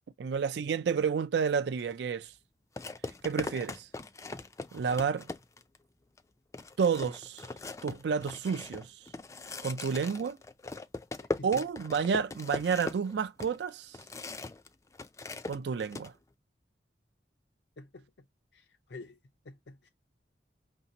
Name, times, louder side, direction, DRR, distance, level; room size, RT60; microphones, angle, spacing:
voice 1, 0.2-2.3 3.2-3.9 4.7-5.3 6.8-7.5 7.8-9.0 9.6-10.4 11.4-14.0 15.5-16.1, right 6 dB, 70° right, 0.4 m, -30 dB
sound 1, 1.8-1.9 2.8-5.8 6.2-6.3 6.5-14.7 14.9-16.1, left 2 dB, 15° left, 0.4 m, -40 dB
voice 2, 17.8-18.1 18.5-19.2 19.4-19.9, left 2 dB, 70° left, 0.5 m, -47 dB
5.7 x 2.7 x 2.8 m
head